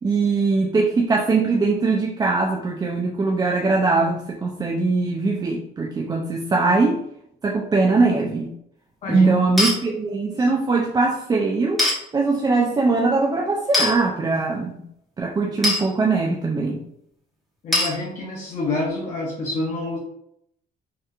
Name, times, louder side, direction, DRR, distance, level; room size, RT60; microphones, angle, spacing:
voice 1, 0.0-7.0 7.4-8.5 9.1-11.8 12.1-14.8 15.2-16.8, right 3 dB, 25° right, -1 dB, 0.4 m, -21 dB
sound 1, 9.6-9.8 11.8-12.0 13.7-13.9 15.6-15.8 17.7-17.9, left 2 dB, ahead, 1.2 m, -20 dB
voice 2, 17.6-20.0, left 2 dB, 45° left, -2 dB, 0.7 m, -27 dB
3.2 x 2.9 x 2.4 m, 0.74 s
cardioid pair, 110°, 17 cm